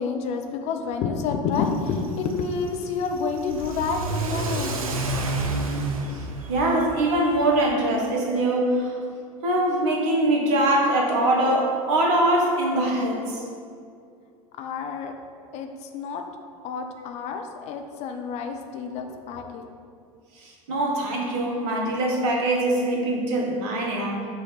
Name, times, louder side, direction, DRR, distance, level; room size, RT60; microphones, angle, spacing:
voice 1, 0.0-4.8 14.6-15.1 15.5-16.2 16.6-19.6, left 5 dB, 40° left, 5 dB, 0.5 m, -29 dB
Car / Accelerating revving vroom, 1.5-7.7, right 2 dB, 75° right, 0.6 m, -31 dB
voice 2, 6.1-9.0 9.4-13.4 20.4-24.2, right 1 dB, 55° right, 0 dB, 1.3 m, -23 dB
6.1 x 3.2 x 5.7 m, 2.3 s
figure-of-eight pair, 80°, 18 cm